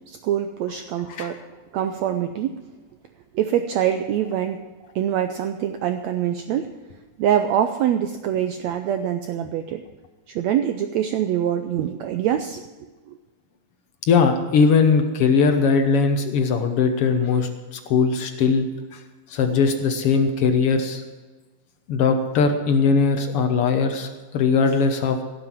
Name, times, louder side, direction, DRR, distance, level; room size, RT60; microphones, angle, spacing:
voice 1, 0.1-1.4 1.7-2.6 3.3-4.6 4.9-6.7 7.2-9.8 10.3-12.6 13.1-13.2, right 10 dB, 85° right, 8 dB, 1.5 m, -24 dB
voice 2, 14.1-18.7 18.9-19.0 19.3-21.0 21.9-25.2, left 5 dB, 65° left, 6 dB, 1.4 m, -20 dB
16.5 x 7.7 x 7.6 m, 1.3 s
omnidirectional pair, 4.0 m